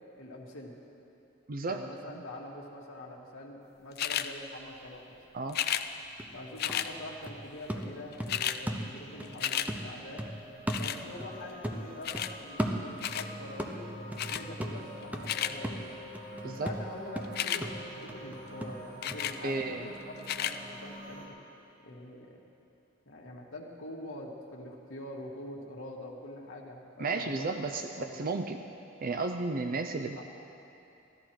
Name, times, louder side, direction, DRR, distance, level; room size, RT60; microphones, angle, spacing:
voice 1, 0.1-0.7 1.7-5.2 6.3-10.2 10.8-15.8 16.4-21.4 21.8-22.4 23.0-28.2 30.2-30.3, left 1 dB, 85° left, -2 dB, 1.6 m, -44 dB
voice 2, 1.5-1.8 5.3-5.6 16.4-16.7 19.4-19.9 27.0-28.6 29.0-30.2, right 3 dB, 45° right, 6 dB, 0.5 m, -33 dB
sound 1, 4.0-4.3 5.5-5.9 6.6-6.9 7.8-7.9 8.1-8.6 9.0-9.7 10.7-11.0 12.0-12.3 13.0-13.3 14.2-14.4 15.0-15.5 17.2-17.6 19.0-19.4 20.2-20.6 21.2-21.3, left 10 dB, 50° left, 0.4 m, -32 dB
sound 2, 5.7-5.8 6.2-9.3 9.7-11.4 11.6-13.2 13.6-19.3 19.6-19.7, right 1 dB, 10° right, 0.7 m, -37 dB
sound 3, 9.0-21.3, equal, 65° right, 2.4 m, -47 dB
15.5 x 13.5 x 4.5 m, 2.8 s
head